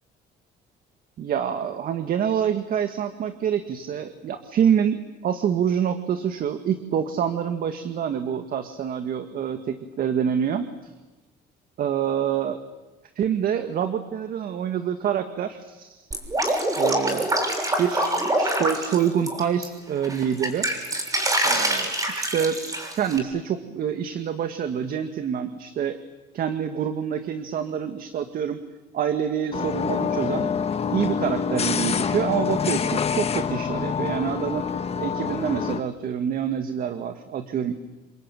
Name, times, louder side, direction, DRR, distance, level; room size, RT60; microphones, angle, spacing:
voice 1, 1.2-10.9 11.8-12.6 13.2-16.1 16.8-17.3 17.8-20.7 21.4-22.6 22.9-26.0 26.3-28.6 28.9-30.5 30.9-34.7 35.0-37.7, right 8 dB, 60° right, 8 dB, 1.9 m, -26 dB
Drip, 16.1-19.6 20.0-23.2, right 1 dB, 20° right, 6.5 m, -25 dB
sound 1, 29.5-35.8, left 6 dB, 35° left, 1.5 m, -26 dB
28.0 x 22.5 x 9.2 m, 1.1 s
cardioid pair, 110°, 17 cm